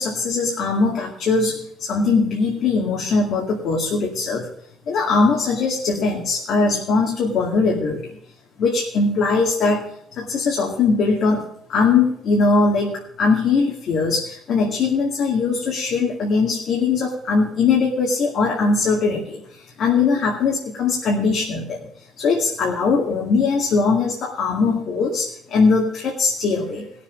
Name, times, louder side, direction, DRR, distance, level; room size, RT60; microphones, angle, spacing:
voice 1, 0.0-4.5 4.9-8.2 8.6-9.8 10.2-21.9 22.2-26.9, left 4 dB, 50° left, -1 dB, 2.3 m, -20 dB
19.0 x 7.3 x 5.2 m, 0.69 s
cardioid pair, 175°, 0 cm